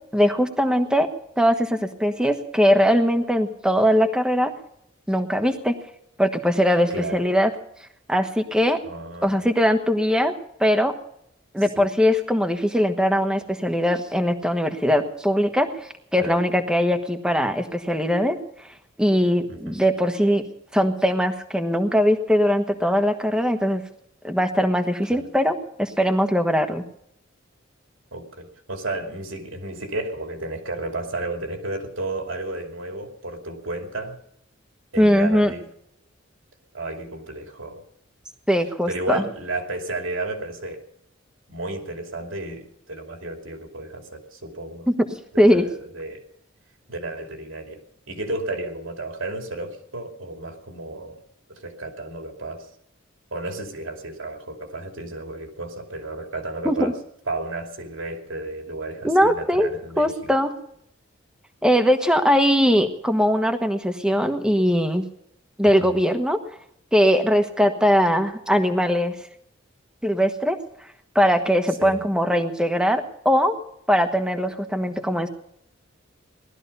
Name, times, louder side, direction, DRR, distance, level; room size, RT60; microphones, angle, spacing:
voice 1, 0.1-1.1 1.4-4.5 5.1-5.8 6.2-7.5 8.1-8.8 9.2-10.3 10.6-10.9 11.5-15.7 16.1-18.4 19.0-20.4 20.7-23.8 24.2-26.8 35.0-35.5 38.5-39.2 44.9-45.1 45.4-45.6 56.6-56.9 59.0-59.7 60.0-60.5 61.6-65.0 65.6-66.4 66.9-69.1 70.0-70.6 71.1-73.6 73.9-75.3, equal, 5° right, 7 dB, 1.2 m, -20 dB
voice 2, 6.9-7.3 8.8-9.5 11.6-11.9 16.2-16.4 19.5-19.8 25.1-25.3 28.1-34.2 34.9-35.7 36.7-37.8 38.9-40.9 41.5-44.9 45.3-46.2 46.9-47.8 48.1-51.2 51.5-52.7 53.3-56.9 57.3-60.3 65.8-66.0 71.8-72.1, right 2 dB, 85° right, 4 dB, 2.7 m, -33 dB
18.5 x 13.0 x 5.5 m, 0.75 s
head